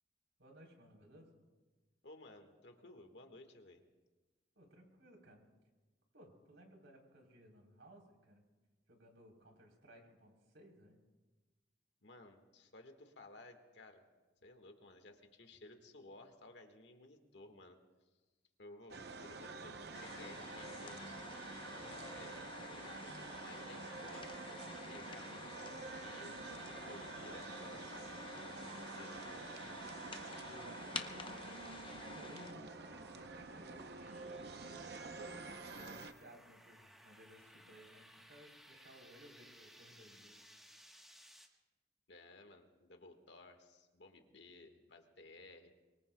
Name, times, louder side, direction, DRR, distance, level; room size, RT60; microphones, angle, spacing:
voice 1, 0.4-1.4 4.6-5.4 6.1-8.4 8.9-11.0 30.4-30.7 31.3-32.7 33.1-35.1 35.7-40.4, equal, 85° right, 0 dB, 3.8 m, -60 dB
voice 2, 2.0-3.8 12.0-14.0 14.4-17.8 18.6-21.1 21.7-23.1 23.3-24.4 24.9-29.4 42.1-45.7, left 2 dB, 70° left, 5 dB, 1.6 m, -57 dB
sound 1, 18.9-36.1, right 3 dB, 60° right, 0.8 m, -48 dB
sound 2, 19.9-32.5, left 4 dB, 25° left, 0.7 m, -50 dB
sound 3, 31.3-41.5, equal, ahead, 1.2 m, -62 dB
24.0 x 24.0 x 2.3 m, 1.2 s
head